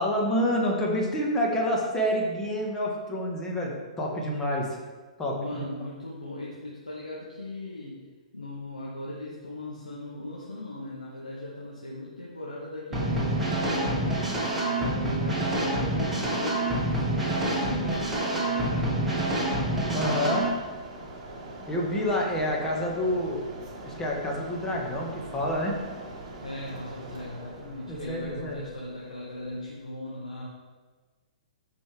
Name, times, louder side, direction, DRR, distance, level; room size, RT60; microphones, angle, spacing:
voice 1, 0.0-4.8 5.2-5.6 19.9-20.5 21.7-23.4 23.8-25.8 27.9-28.6, equal, 15° left, -2 dB, 1.7 m, -28 dB
voice 2, 5.3-8.0 8.3-14.2 14.6-19.1 26.4-30.5, left 1 dB, 80° left, -6 dB, 1.7 m, -38 dB
sound 1, 12.9-20.5, right 1 dB, 5° right, 2.2 m, -27 dB
Mechanisms, 17.5-29.9, right 2 dB, 30° right, 1.8 m, -44 dB
14.0 x 5.3 x 3.5 m, 1.4 s
figure-of-eight pair, 120°, 4 cm